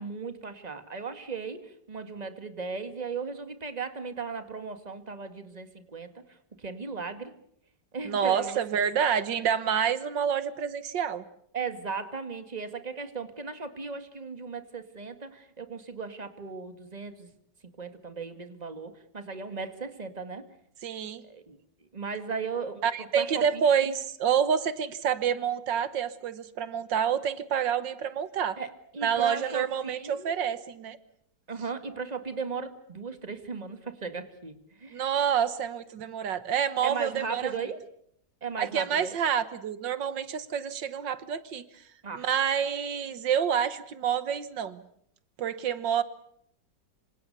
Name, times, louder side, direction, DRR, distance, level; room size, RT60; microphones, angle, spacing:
voice 1, 0.0-6.1 6.6-7.3 7.9-8.6 11.5-17.3 17.8-20.4 21.2-21.6 21.9-23.6 28.6-30.5 31.5-35.1 36.8-37.8 38.4-39.2 42.0-42.3, right 5 dB, 20° right, 9 dB, 2.1 m, -37 dB
voice 2, 8.1-11.2 20.8-21.2 22.8-28.6 29.0-31.0 34.9-37.5 38.6-41.8 42.1-44.8 45.4-46.0, right 8 dB, 85° right, 14 dB, 1.9 m, -28 dB
26.5 x 26.0 x 6.8 m, 0.69 s
omnidirectional pair, 1.9 m